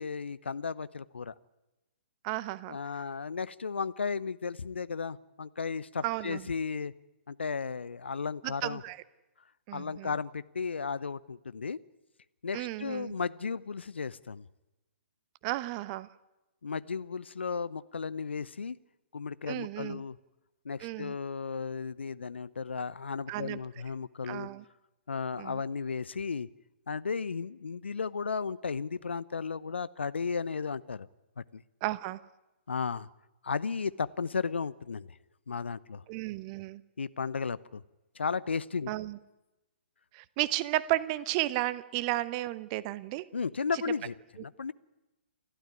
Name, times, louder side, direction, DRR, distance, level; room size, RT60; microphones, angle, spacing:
voice 1, 0.0-1.3 2.7-6.9 7.3-8.8 9.7-11.8 12.4-14.4 16.6-18.8 19.1-20.2 20.6-24.5 25.1-26.5 26.9-31.1 31.5-31.6 32.7-33.1 33.4-35.1 35.5-36.0 37.0-37.8 38.1-38.9 43.3-44.1 44.4-44.7, left 5 dB, 70° left, 17 dB, 0.8 m, -34 dB
voice 2, 2.2-2.8 6.0-6.5 8.4-9.0 9.7-10.1 12.5-13.1 15.4-16.1 19.5-20.0 20.8-21.2 23.3-23.6 24.3-24.6 25.4-25.6 31.8-32.2 36.1-36.8 38.9-39.2 40.1-43.3 43.7-43.8, right 17 dB, 30° right, 16 dB, 0.9 m, -33 dB
29.0 x 13.0 x 9.7 m, 1.0 s
figure-of-eight pair, 125°, 6 cm